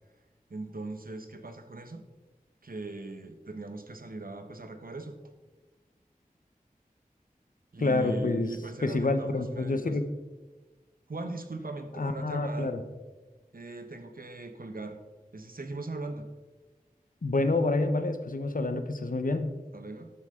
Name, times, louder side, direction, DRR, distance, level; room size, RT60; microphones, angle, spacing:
voice 1, 0.5-2.0 2.6-5.2 7.7-9.9 11.1-12.7 13.5-15.0 15.3-16.3 19.7-20.1, right 2 dB, 70° right, 7 dB, 1.2 m, -39 dB
voice 2, 7.8-10.1 11.9-12.8 17.2-19.6, left 2 dB, 65° left, 8 dB, 1.0 m, -28 dB
12.5 x 7.8 x 3.8 m, 1.2 s
wide cardioid pair, 45°, 15 cm